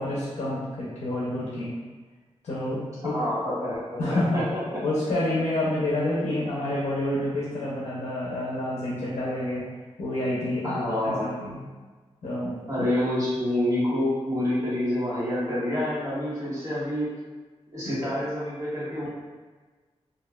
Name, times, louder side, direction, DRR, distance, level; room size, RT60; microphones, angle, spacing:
voice 1, 0.0-1.7 2.4-3.2 4.0-4.4 4.8-9.7 10.0-11.6 12.2-12.9 17.8-17.9, left 1 dB, 80° left, -7 dB, 0.5 m, -28 dB
voice 2, 3.1-4.4 4.7-4.8 10.6-11.5 12.7-17.1 17.7-19.1, left 1 dB, 25° right, -11 dB, 1.3 m, -27 dB
3.0 x 2.3 x 2.2 m, 1.4 s
wide cardioid pair, 115°, 11 cm